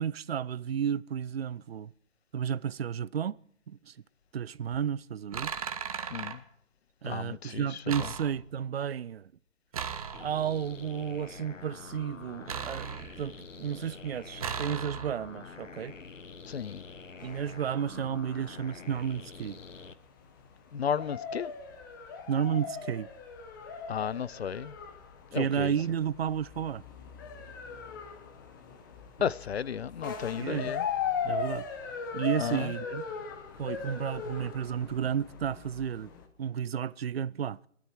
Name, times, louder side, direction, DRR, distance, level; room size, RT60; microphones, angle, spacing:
voice 1, 0.0-1.9 2.3-3.4 3.7-3.9 4.3-5.5 7.0-9.3 10.2-16.0 17.2-19.6 22.3-23.1 25.3-26.8 29.2-29.3 30.3-30.7 31.2-31.7 32.1-33.0 33.6-36.1 36.4-37.7, right 8 dB, 55° right, 0.5 m, -32 dB
sound 1, 4.6-4.9 5.3-6.4 7.9-8.7 9.7-10.6 12.5-13.4 14.4-15.4, right 7 dB, 30° right, 1.0 m, -37 dB
voice 2, 6.1-6.4 7.0-8.1 16.5-16.8 20.7-21.5 23.9-24.7 25.3-25.7 29.2-30.9 32.4-32.7, left 8 dB, 55° left, 0.6 m, -33 dB
sound 2, 10.1-19.9, left 5 dB, 85° left, 1.3 m, -47 dB
sound 3, 17.2-36.3, left 6 dB, 15° left, 1.0 m, -39 dB
18.0 x 13.0 x 4.6 m
figure-of-eight pair, 155°, 37 cm